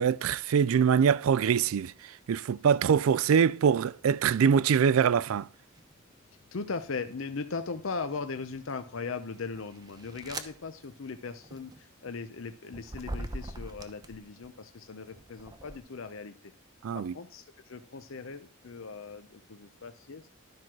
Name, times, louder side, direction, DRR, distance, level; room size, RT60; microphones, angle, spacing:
voice 1, 0.0-1.9 2.3-5.5 16.8-17.1, right 7 dB, 85° right, 0.4 m, -24 dB
sound 1, 5.7-6.0 6.7-7.4 8.1-14.5 15.1-15.8, right 2 dB, 20° right, 0.8 m, -43 dB
voice 2, 6.5-16.5 16.9-20.3, left 4 dB, 75° left, 0.7 m, -39 dB
12.0 x 4.6 x 6.0 m
head